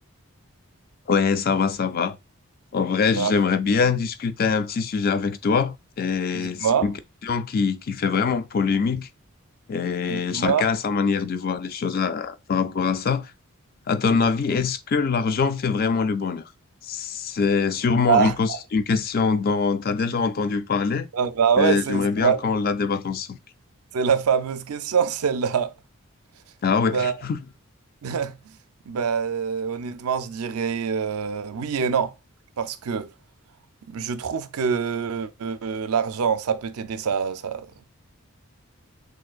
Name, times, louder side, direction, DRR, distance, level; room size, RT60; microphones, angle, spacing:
voice 1, 1.1-2.2 2.7-6.9 7.2-9.1 9.7-13.3 13.9-16.4 16.8-21.1 21.6-23.4 26.6-27.4, left 5 dB, 40° left, 0.3 m, -23 dB
voice 2, 6.3-6.9 10.1-10.7 14.2-14.3 18.1-18.6 21.1-22.4 23.9-25.7 26.8-27.2 28.0-28.4 28.9-32.1 32.6-33.1 33.9-37.7, right 6 dB, 85° right, 0.4 m, -24 dB
6.2 x 2.6 x 2.3 m
head